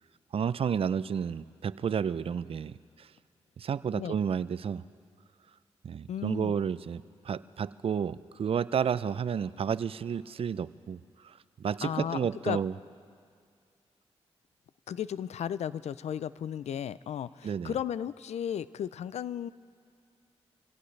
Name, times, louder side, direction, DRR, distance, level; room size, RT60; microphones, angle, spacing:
voice 1, 0.3-3.1 3.6-4.8 5.8-12.7 17.4-17.7, right 7 dB, 55° right, 17 dB, 0.4 m, -31 dB
voice 2, 6.1-6.5 11.8-12.6 14.9-19.5, left 9 dB, 75° left, 17 dB, 0.4 m, -35 dB
25.5 x 17.0 x 3.3 m, 2.2 s
cardioid pair, 55°, 11 cm